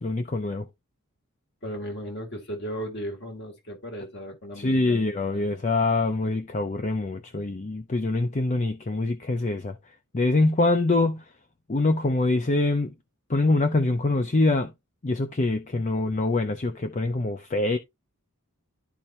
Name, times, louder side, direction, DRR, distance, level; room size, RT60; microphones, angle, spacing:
voice 1, 0.0-0.7 4.6-9.8 10.1-11.2 11.7-12.9 13.3-14.7 15.0-17.8, left 2 dB, 35° left, 0.6 m, -24 dB
voice 2, 1.6-5.0 5.3-5.5, equal, 50° left, 2.2 m, -36 dB
12.5 x 4.3 x 2.6 m
head